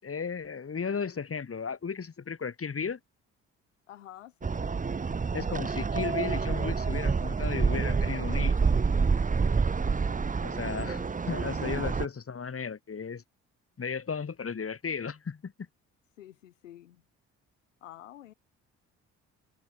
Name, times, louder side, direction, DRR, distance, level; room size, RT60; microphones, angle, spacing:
voice 1, 0.0-3.0 5.3-8.7 10.4-13.2 13.8-15.5, left 6 dB, 35° left, 5.5 m, -35 dB
voice 2, 3.9-4.7 10.0-11.2 11.4-11.9 16.2-17.0 17.8-18.3, left 12 dB, 90° left, 5.0 m, -50 dB
sound 1, 4.4-12.1, right 5 dB, 20° right, 1.0 m, -28 dB
hypercardioid pair, 50°, 37 cm